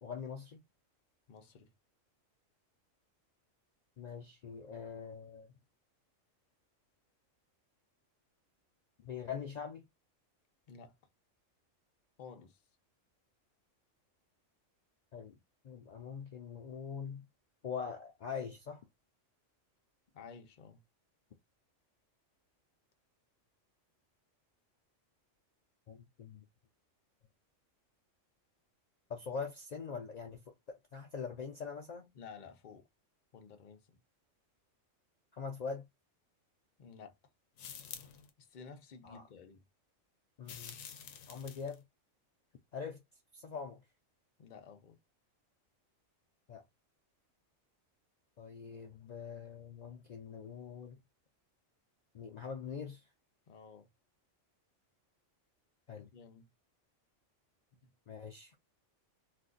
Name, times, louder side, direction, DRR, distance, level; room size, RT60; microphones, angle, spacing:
voice 1, 0.0-0.6 4.0-5.5 9.0-9.9 15.1-15.4 15.6-17.3 17.6-18.8 25.9-26.4 29.1-32.1 35.3-35.8 39.0-39.2 40.4-40.8 41.3-41.8 42.7-43.0 43.3-43.8 46.5-46.6 48.4-51.0 52.1-53.0 55.9-56.1 58.1-58.6, left 6 dB, 90° left, 0.3 m, -43 dB
voice 2, 1.3-1.7 10.7-11.0 12.2-12.6 20.1-20.8 32.1-32.9 33.3-34.0 36.8-37.2 38.4-39.6 44.4-45.0 53.5-53.9 56.0-56.5 57.7-57.9, left 5 dB, 50° left, 0.6 m, -53 dB
sound 1, 37.6-38.3 40.4-41.8, left 8 dB, 70° left, 0.9 m, -48 dB
2.5 x 2.4 x 3.8 m
omnidirectional pair, 1.3 m